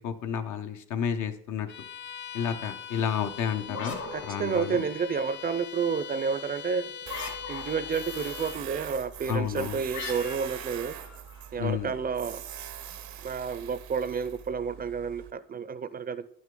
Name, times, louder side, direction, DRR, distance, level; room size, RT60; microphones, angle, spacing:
voice 1, 0.0-1.7 2.3-4.8 9.3-9.8 11.6-11.9, left 8 dB, 80° left, 7 dB, 0.8 m, -31 dB
Bowed string instrument, 1.7-8.7, left 7 dB, 40° left, 0.4 m, -41 dB
sound 1, 3.7-5.2 7.0-8.1 9.9-11.8, left 4 dB, 60° left, 1.9 m, -40 dB
voice 2, 4.1-6.9 7.5-11.0 11.5-12.4 13.2-16.3, right 6 dB, 30° right, 15 dB, 0.4 m, -30 dB
Tools, 7.1-15.3, right 10 dB, 70° right, 0.6 m, -43 dB
10.0 x 6.1 x 3.7 m, 0.68 s
cardioid pair, 90°, 30 cm